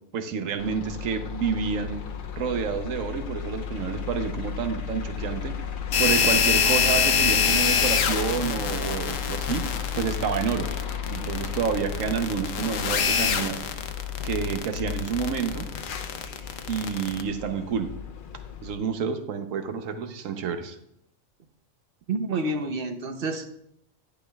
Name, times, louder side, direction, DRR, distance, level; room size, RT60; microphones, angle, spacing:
voice 1, 0.1-2.0 2.3-5.5 6.0-9.7 9.9-10.7 11.1-13.6 14.2-15.7 16.7-18.0 18.6-20.8, right 6 dB, 85° right, 8 dB, 1.2 m, -29 dB
sound 1, 0.6-18.7, left 8 dB, 55° left, 0.6 m, -34 dB
sound 2, 5.9-17.2, left 6 dB, 80° left, 1.1 m, -25 dB
voice 2, 22.1-23.5, right 2 dB, 50° right, 7 dB, 0.9 m, -29 dB
10.5 x 10.5 x 2.3 m, 0.76 s
omnidirectional pair, 1.3 m